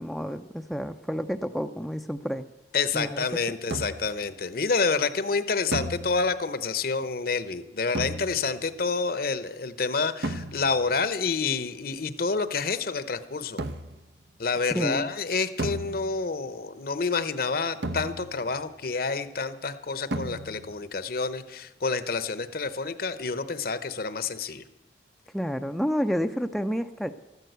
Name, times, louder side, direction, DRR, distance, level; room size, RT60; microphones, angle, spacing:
voice 1, 0.0-2.4 2.9-3.2 14.7-15.1 25.3-27.1, equal, ahead, 6 dB, 0.5 m, -29 dB
voice 2, 2.7-13.6 14.4-24.6, left 4 dB, 55° left, 13 dB, 0.9 m, -28 dB
sound 1, 3.7-4.3 5.7-6.6 7.9-8.7 10.2-10.9 13.6-14.1 15.6-16.5 17.8-18.6 20.1-20.8, right 1 dB, 80° right, 0.9 m, -34 dB
13.5 x 12.0 x 8.1 m, 0.99 s
head